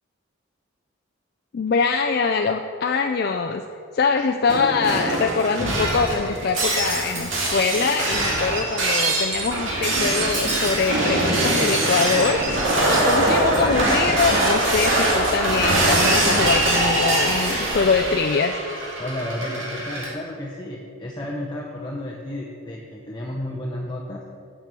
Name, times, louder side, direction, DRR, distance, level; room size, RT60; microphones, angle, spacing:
voice 1, 1.5-3.6 3.9-18.5, left 5 dB, 50° left, 4 dB, 0.4 m, -23 dB
Shatter, 4.5-20.1, right 1 dB, 70° right, 2.2 m, -22 dB
voice 2, 19.0-24.2, left 1 dB, 20° left, -3 dB, 0.7 m, -32 dB
7.5 x 7.5 x 6.7 m, 2.3 s
head